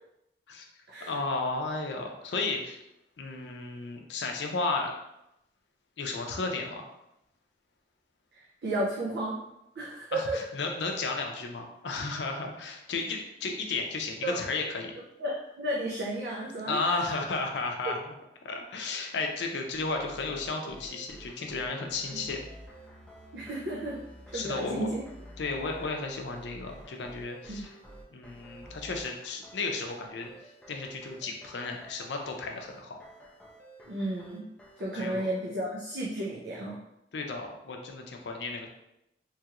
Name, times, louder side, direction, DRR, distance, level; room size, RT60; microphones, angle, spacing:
voice 1, 1.1-2.8 3.2-4.9 6.0-6.9 10.1-14.9 16.7-18.1 18.4-22.4 24.3-24.9 25.4-27.7 28.1-30.3 30.7-33.0 34.9-35.3 37.1-38.7, left 3 dB, 85° left, 2 dB, 0.5 m, -33 dB
voice 2, 8.3-9.4 9.8-10.4 14.2-14.4 15.2-17.0 22.1-22.2 23.3-24.0 24.3-25.0 27.5-27.6 33.9-34.5 34.8-36.8, right 1 dB, 70° right, -4 dB, 0.5 m, -33 dB
sound 1, 19.7-35.0, right 1 dB, 5° left, 0.3 m, -50 dB
3.0 x 2.4 x 2.9 m, 0.86 s
head